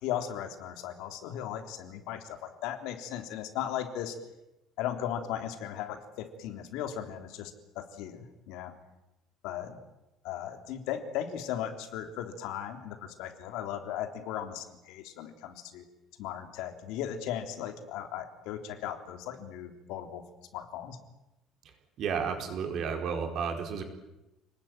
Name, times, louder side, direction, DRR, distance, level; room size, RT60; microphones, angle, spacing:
voice 1, 0.0-4.2 4.8-8.7 9.4-9.8 10.2-15.9 16.2-20.2 20.5-21.0, left 10 dB, 80° left, 6 dB, 3.5 m, -37 dB
voice 2, 22.0-23.8, right 6 dB, 45° right, 5 dB, 4.5 m, -32 dB
29.5 x 20.0 x 9.1 m, 0.97 s
cardioid pair, 180°, 0 cm